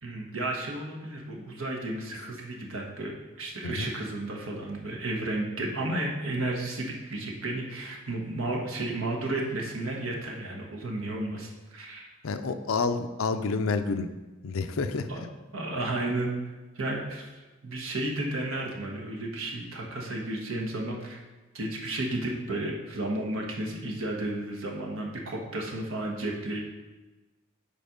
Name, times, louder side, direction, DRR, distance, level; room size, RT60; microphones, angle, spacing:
voice 1, 0.0-12.1 15.1-15.2 15.5-16.3 16.7-17.3 17.6-21.2 21.5-26.6, right 2 dB, 80° right, 0 dB, 1.3 m, -33 dB
voice 2, 12.2-14.1 14.4-15.1, left 4 dB, 85° left, 9 dB, 0.5 m, -29 dB
7.4 x 4.3 x 5.1 m, 1.2 s
head